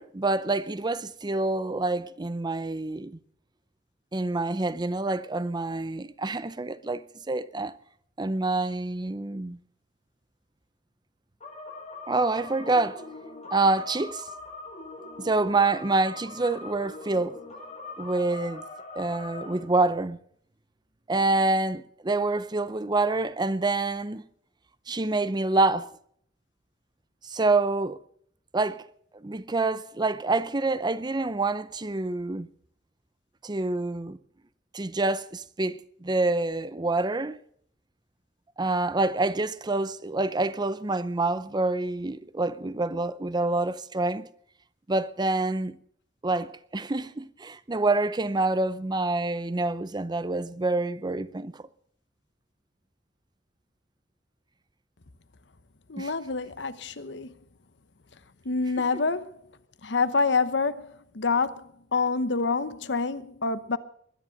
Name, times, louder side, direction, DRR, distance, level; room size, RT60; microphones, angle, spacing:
voice 1, 0.0-3.2 4.1-7.7 8.2-9.6 12.1-13.0 13.5-14.3 15.2-17.4 18.0-18.6 19.0-20.2 21.1-24.2 24.9-25.9 27.2-28.0 28.5-28.8 29.1-32.5 33.4-34.2 34.7-37.4 38.6-44.3 44.9-45.8 46.2-51.6 56.0-56.1, right 2 dB, 25° right, 0.6 m, -27 dB
sound 1, 11.4-19.6, left 3 dB, 40° left, 6.6 m, -42 dB
voice 2, 55.9-57.3 58.4-59.4 59.8-63.8, left 4 dB, 70° left, 1.0 m, -27 dB
21.0 x 10.5 x 6.5 m
head